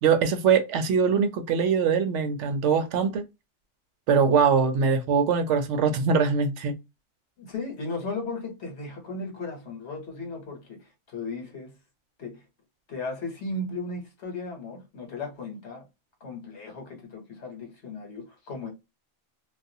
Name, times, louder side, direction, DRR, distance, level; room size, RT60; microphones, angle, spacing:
voice 1, 0.0-3.2 4.1-6.7, right 6 dB, 85° right, 0.9 m, -22 dB
voice 2, 7.4-11.8 12.2-12.4 12.9-15.8 16.2-18.7, left 3 dB, 70° left, 1.2 m, -36 dB
2.3 x 2.2 x 2.6 m
omnidirectional pair, 1.2 m